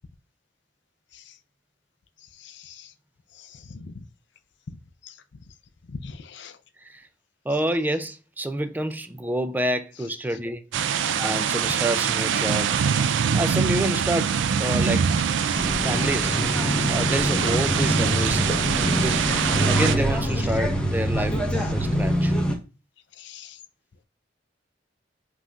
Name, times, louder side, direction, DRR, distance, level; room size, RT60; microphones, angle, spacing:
voice 1, 2.4-2.9 3.8-3.9 5.0-5.1 6.0-6.5 12.9-13.1 15.5-15.7 17.4-17.5 23.2-23.6, left 5 dB, 70° left, 0.5 m, -40 dB
voice 2, 7.5-10.6 11.2-12.7 13.3-14.3 14.6-15.1 15.8-16.4 16.9-18.5 19.0-19.3 19.5-22.3, right 1 dB, 10° right, 0.4 m, -28 dB
sound 1, 10.7-20.0, right 7 dB, 85° right, 0.4 m, -24 dB
sound 2, 15.6-22.5, equal, 5° left, 0.9 m, -24 dB
5.3 x 3.0 x 2.4 m
head